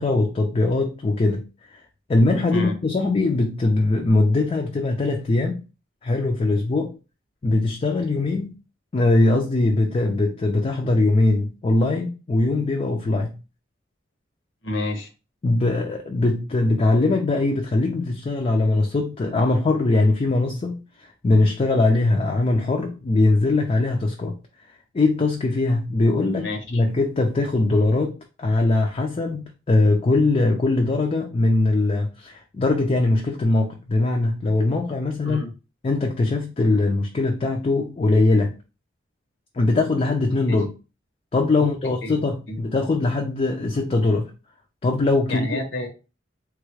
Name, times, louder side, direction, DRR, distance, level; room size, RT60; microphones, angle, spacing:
voice 1, 0.0-1.4 1.7-1.8 2.1-5.6 6.0-7.0 7.4-8.5 8.9-13.4 15.4-24.4 24.9-35.4 35.8-38.5 39.5-40.7 41.3-44.3 44.8-45.6, left 2 dB, 30° left, 0.4 m, -21 dB
voice 2, 14.6-15.1 26.3-26.8 35.2-35.5 40.5-40.6 42.0-42.1 42.5-42.6 45.3-45.9, left 1 dB, 75° left, 0.8 m, -29 dB
3.3 x 2.3 x 3.1 m
head